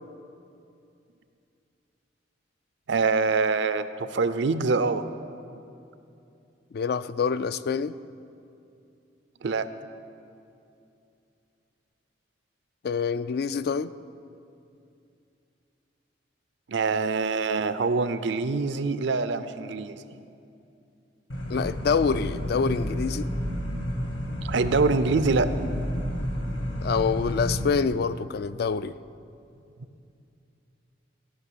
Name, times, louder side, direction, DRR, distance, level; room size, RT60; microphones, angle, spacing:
voice 1, 2.9-5.0 9.4-9.7 16.7-20.0 24.4-25.5, right 4 dB, 70° right, 0.5 m, -25 dB
voice 2, 6.7-7.9 12.8-13.9 21.5-23.3 26.8-28.9, left 5 dB, 55° left, 0.3 m, -26 dB
sound 1, 21.3-27.6, equal, 85° left, 1.8 m, -30 dB
15.0 x 6.1 x 7.5 m
head